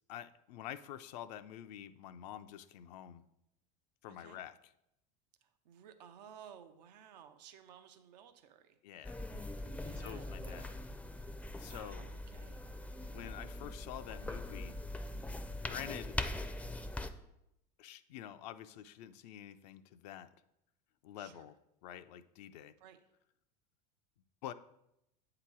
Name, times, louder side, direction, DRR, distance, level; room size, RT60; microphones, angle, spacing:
voice 1, 0.1-3.2 4.0-4.6 8.8-9.2 9.8-10.8 11.6-12.1 13.0-14.8 15.6-16.2 17.8-20.3 21.0-21.6 21.8-22.7 24.4-24.5, left 11 dB, 80° left, 10 dB, 0.5 m, -47 dB
voice 2, 4.1-4.4 5.4-8.8 9.8-10.8 11.6-12.6 21.2-21.5 22.8-23.0, right 9 dB, 85° right, 9 dB, 0.6 m, -56 dB
sound 1, 9.0-17.1, left 2 dB, 5° left, 0.4 m, -42 dB
7.8 x 2.9 x 6.0 m, 0.83 s
supercardioid pair, 105°, 21 cm